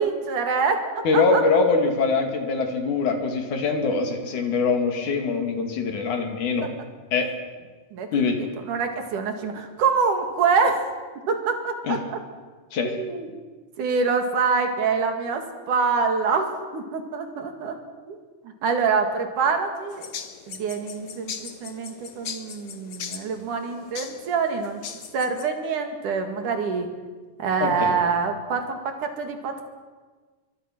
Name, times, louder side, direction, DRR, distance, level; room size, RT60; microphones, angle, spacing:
voice 1, 0.0-1.4 7.9-8.1 8.7-10.8 11.3-12.2 12.8-13.3 13.8-17.8 18.1-18.2 18.6-20.1 20.5-24.8 25.1-26.9 27.4-29.6, right 5 dB, 85° right, 5 dB, 3.8 m, -25 dB
voice 2, 1.0-6.7 7.1-7.3 8.1-8.5 11.8-12.0 12.7-13.0 27.6-28.0, left 4 dB, 75° left, 4 dB, 4.0 m, -23 dB
sound 1, 19.9-25.5, left 7 dB, 50° left, 2.0 m, -39 dB
25.5 x 23.0 x 6.2 m, 1.4 s
omnidirectional pair, 3.5 m